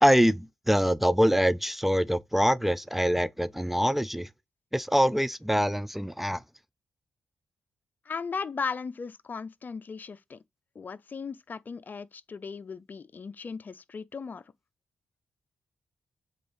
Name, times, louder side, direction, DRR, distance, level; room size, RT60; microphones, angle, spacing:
voice 1, 0.0-4.3 4.7-6.4, equal, 5° right, 0.4 m, -24 dB
voice 2, 8.0-10.4 10.7-14.4, left 5 dB, 50° left, 0.5 m, -37 dB
7.6 x 3.9 x 3.3 m
supercardioid pair, 50°, 4 cm